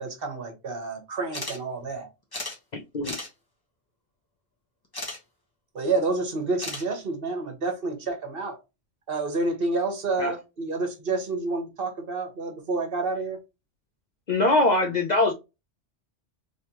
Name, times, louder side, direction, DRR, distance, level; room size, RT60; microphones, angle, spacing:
voice 1, 0.0-2.1 5.7-8.6 9.1-13.4, right 3 dB, 55° right, 1.2 m, -29 dB
sound 1, 1.3-1.6 1.9-2.0 2.3-2.6 3.0-3.3 4.9-5.2 6.6-6.8, left 1 dB, 20° left, 1.0 m, -34 dB
voice 2, 14.3-15.3, left 2 dB, 55° left, 0.5 m, -22 dB
3.2 x 3.1 x 2.8 m
omnidirectional pair, 1.2 m